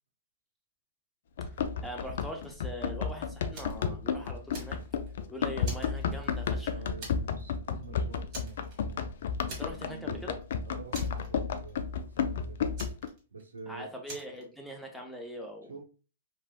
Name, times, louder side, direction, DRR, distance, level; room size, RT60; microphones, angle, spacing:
Run, 1.4-13.1, left 6 dB, 60° left, 0.3 m, -32 dB
voice 1, 1.8-4.8 5.3-6.7 9.5-10.4 13.7-15.8, equal, ahead, 1 dB, 0.7 m, -42 dB
Fire, 3.5-3.9 4.3-5.2 5.6-6.6 7.0-7.4 7.7-7.9 8.3-9.0 9.5-10.1 10.3-10.4 10.9-11.7 12.8-13.6 14.1-14.4, right 2 dB, 40° right, 1.5 m, -44 dB
voice 2, 6.7-9.0 9.7-10.3 10.6-12.7 13.3-13.9 15.7-15.8, right 4 dB, 85° right, 1 dB, 0.9 m, -47 dB
3.1 x 2.9 x 2.2 m, 0.35 s
hypercardioid pair, 115°, 0 cm